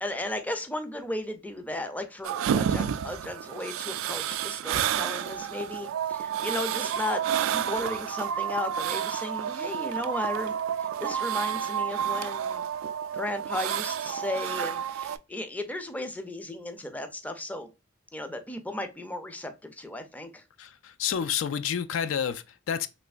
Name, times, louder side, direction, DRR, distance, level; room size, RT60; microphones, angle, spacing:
voice 1, 0.0-7.2 7.5-12.6 13.1-17.7 18.1-20.4, left 1 dB, 10° left, 0.4 m, -35 dB
sound 1, 2.2-15.2, right 9 dB, 85° right, 0.3 m, -30 dB
voice 2, 20.6-22.9, left 8 dB, 70° left, 0.3 m, -29 dB
3.2 x 2.9 x 2.4 m
head